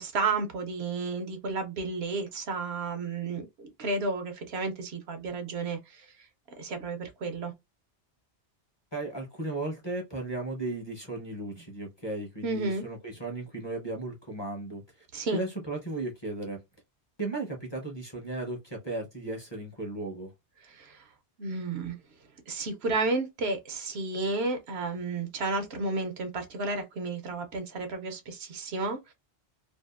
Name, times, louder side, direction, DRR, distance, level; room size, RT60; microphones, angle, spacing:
voice 1, 0.0-6.1 6.6-7.5 12.4-12.8 15.1-15.4 20.7-21.0 21.4-22.0 22.5-29.1, right 3 dB, 70° right, 0.9 m, -32 dB
voice 2, 8.9-14.8 15.3-16.6 17.2-20.3, right 2 dB, 25° left, 0.7 m, -35 dB
2.7 x 2.4 x 2.4 m
omnidirectional pair, 1.2 m